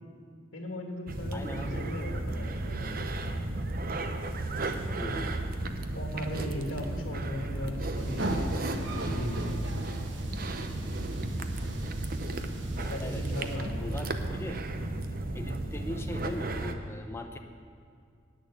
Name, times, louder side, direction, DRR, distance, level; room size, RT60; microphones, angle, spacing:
voice 1, 0.5-3.1 5.9-9.6 12.7-13.9, left 1 dB, 85° left, 2 dB, 1.7 m, -38 dB
sound 1, 1.1-16.8, right 2 dB, 45° right, 0.7 m, -34 dB
voice 2, 1.3-1.8 5.0-5.3 12.8-13.5 13.8-14.6 15.3-17.4, left 1 dB, 10° left, 4 dB, 0.7 m, -39 dB
sound 2, 8.0-13.6, right 1 dB, 65° right, 1.2 m, -39 dB
10.5 x 9.0 x 8.4 m, 2.3 s
head